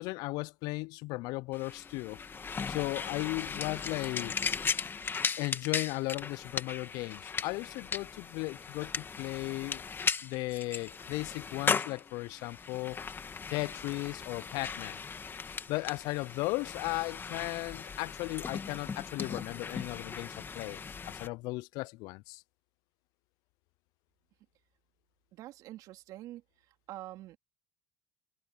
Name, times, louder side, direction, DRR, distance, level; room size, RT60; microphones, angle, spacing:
voice 1, 0.0-2.2 2.7-4.4 5.4-9.8 10.2-13.0 13.5-15.0 15.7-20.8 21.1-22.4, left 23 dB, 70° left, 0.4 m, -36 dB
sound 1, 1.5-21.3, left 5 dB, 35° left, 2.0 m, -37 dB
voice 2, 25.3-26.4 26.9-27.4, right 15 dB, 65° right, 3.1 m, -45 dB
supercardioid pair, 75°, 7 cm